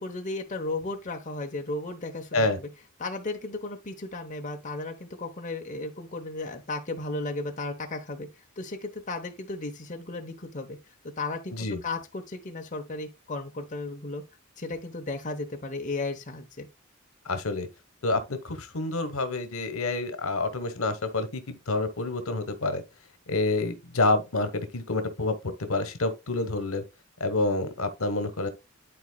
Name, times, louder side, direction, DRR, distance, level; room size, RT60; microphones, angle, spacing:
voice 1, 0.0-2.7 3.0-8.3 8.6-10.8 11.2-14.2 14.6-16.7, left 2 dB, 35° left, 0.9 m, -35 dB
voice 2, 17.2-17.7 18.0-22.8 23.3-26.8 27.2-28.5, left 2 dB, 85° left, 1.1 m, -28 dB
11.5 x 4.2 x 2.2 m
head